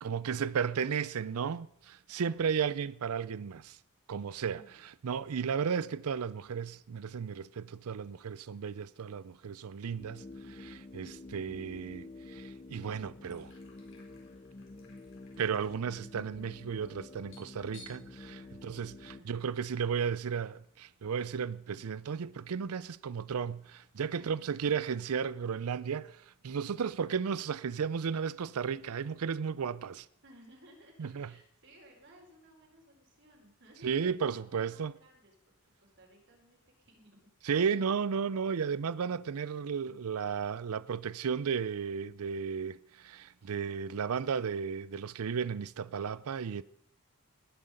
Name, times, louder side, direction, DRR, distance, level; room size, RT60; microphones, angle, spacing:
voice 1, 0.0-3.8 4.1-4.6 5.0-13.5 15.4-30.1 31.0-31.3 33.8-34.9 37.4-46.6, right 6 dB, 75° right, 0.5 m, -34 dB
voice 2, 2.2-2.6 4.5-5.0 18.3-18.7 19.1-19.4 24.1-24.7 30.2-35.5 35.8-37.3, right 1 dB, 55° right, 4.7 m, -60 dB
sound 1, 10.0-19.2, left 2 dB, 25° left, 0.5 m, -49 dB
sound 2, 13.2-19.4 19.7-19.8 20.2-20.5 21.4-21.5 23.0-23.1 24.2-24.3 24.5-25.3 25.8-25.9 26.6-26.7 27.0-27.4 27.6-29.9, left 2 dB, 60° left, 4.5 m, -60 dB
19.5 x 9.6 x 5.2 m
head